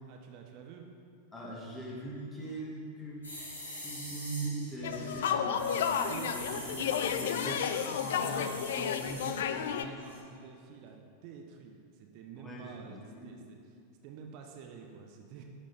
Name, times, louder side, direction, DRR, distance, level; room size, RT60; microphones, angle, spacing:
voice 1, 0.1-0.9 5.3-6.8 9.7-15.4, right 6 dB, 45° right, 2 dB, 0.7 m, -50 dB
voice 2, 1.3-3.2 3.6-10.3 12.4-13.3, right 1 dB, 15° left, -4 dB, 1.8 m, -41 dB
sound 1, 1.9-2.6 3.0-3.5 4.3-4.4 4.7-4.8 6.1-6.7 7.2-8.5 8.8-8.9 10.1-10.9, right 2 dB, 70° right, 1.6 m, -59 dB
sound 2, 3.2-9.7 10.0-10.2, left 1 dB, 75° left, 1.9 m, -44 dB
sound 3, 4.8-9.8, left 8 dB, 60° left, 0.4 m, -32 dB
10.5 x 5.1 x 4.2 m, 2.3 s
figure-of-eight pair, 90°, 0 cm